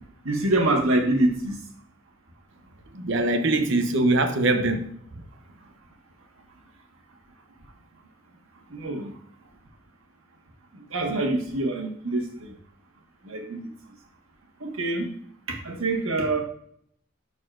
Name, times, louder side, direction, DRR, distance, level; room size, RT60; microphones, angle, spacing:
voice 1, 0.2-1.6 8.7-9.1 10.7-12.5 13.2-13.7 14.6-15.1 15.5-16.4, right 2 dB, 90° right, 1.5 m, -25 dB
voice 2, 2.9-5.0, right 2 dB, 60° right, 0.8 m, -22 dB
11.5 x 4.1 x 2.5 m
head